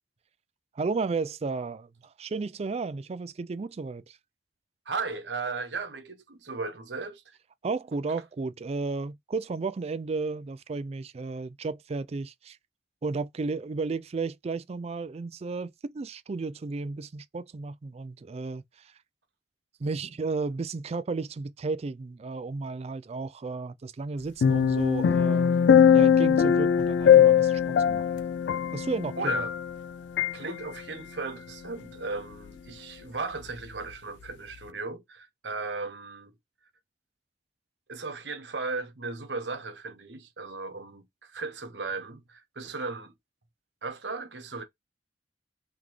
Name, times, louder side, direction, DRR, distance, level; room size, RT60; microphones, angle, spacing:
voice 1, 0.7-4.2 7.6-12.6 13.0-18.9 19.8-25.5 25.9-28.0 28.7-29.5, right 4 dB, 35° right, 0.4 m, -33 dB
voice 2, 4.9-7.4 29.2-29.5 30.3-36.3 37.9-43.1 43.8-44.6, right 4 dB, 90° right, 1.1 m, -36 dB
sound 1, 24.4-29.8 30.2-30.3, left 8 dB, 75° left, 0.3 m, -21 dB
3.8 x 3.5 x 3.1 m
head